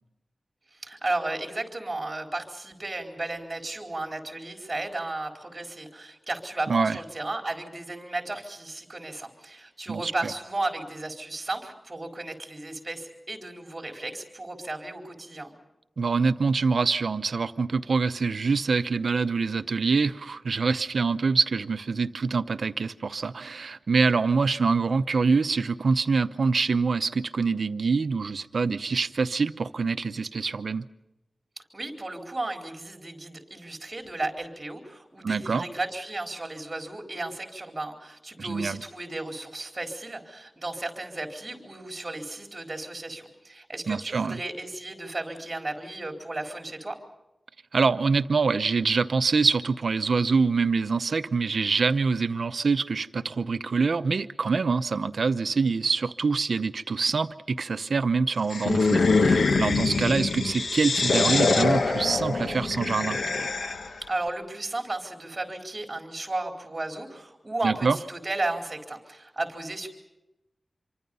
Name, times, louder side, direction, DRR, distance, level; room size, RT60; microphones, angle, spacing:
voice 1, 0.7-15.5 31.7-47.0 64.0-69.9, right 2 dB, 30° right, 4.3 m, -34 dB
voice 2, 6.7-7.0 9.9-10.1 16.0-30.9 35.2-35.7 38.4-38.8 43.9-44.4 47.7-63.2 67.6-68.0, right 4 dB, 80° right, 0.7 m, -25 dB
sound 1, 58.5-64.0, left 3 dB, 85° left, 1.3 m, -24 dB
26.5 x 24.0 x 5.5 m
wide cardioid pair, 100°, 0 cm